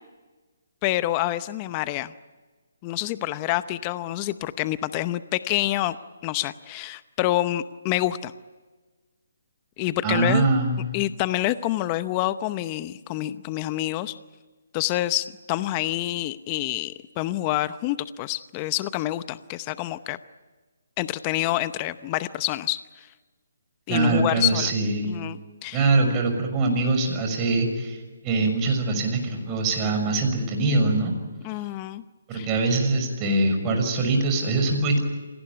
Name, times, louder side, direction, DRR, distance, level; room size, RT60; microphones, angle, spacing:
voice 1, 0.8-2.1 2.8-6.0 6.2-8.3 9.8-10.5 10.9-14.1 14.7-20.2 21.0-22.8 23.9-24.7 25.0-25.9 29.5-29.6 31.4-32.0 32.3-32.5, left 15 dB, 25° left, 14 dB, 0.7 m, -27 dB
voice 2, 10.0-11.0 23.9-25.1 25.7-28.0 28.2-31.1 32.3-35.0, right 3 dB, 20° right, 3 dB, 6.2 m, -23 dB
27.0 x 18.5 x 9.9 m, 1.3 s
hypercardioid pair, 155°, 0 cm